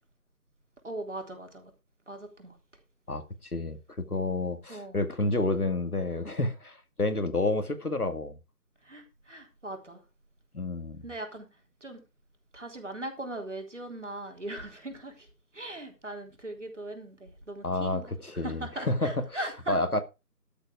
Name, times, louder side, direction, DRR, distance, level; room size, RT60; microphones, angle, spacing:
voice 1, 0.8-1.7 2.1-2.6 4.7-5.0 8.8-10.0 11.0-12.0 12.5-18.1 18.3-19.8, right 1 dB, 45° right, 3.7 m, -40 dB
voice 2, 3.1-8.4 10.5-11.0 17.6-19.1 19.7-20.0, left 2 dB, 65° left, 2.1 m, -30 dB
12.5 x 8.2 x 4.7 m
figure-of-eight pair, 170°, 49 cm